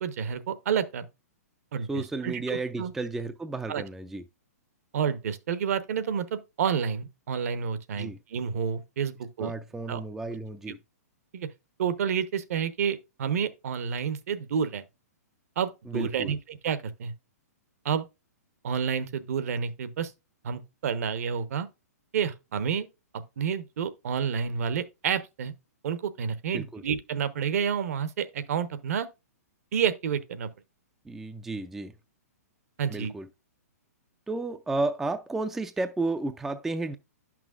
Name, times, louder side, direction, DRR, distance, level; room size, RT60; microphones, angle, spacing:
voice 1, 0.0-1.0 1.7-2.9 3.7-3.8 4.9-9.5 9.9-10.0 10.7-10.8 11.3-11.5 11.8-14.8 15.6-17.1 17.8-18.0 18.6-20.1 20.4-21.7 22.1-22.9 23.4-25.5 25.8-29.1 29.7-30.5 32.8-33.1, right 7 dB, 65° right, 0.9 m, -29 dB
voice 2, 1.9-4.2 8.0-8.2 9.4-10.8 15.9-16.3 26.5-26.8 31.1-31.9 32.9-33.3 34.3-37.0, right 2 dB, 5° right, 0.3 m, -32 dB
10.5 x 6.0 x 2.4 m
hypercardioid pair, 145°, 9 cm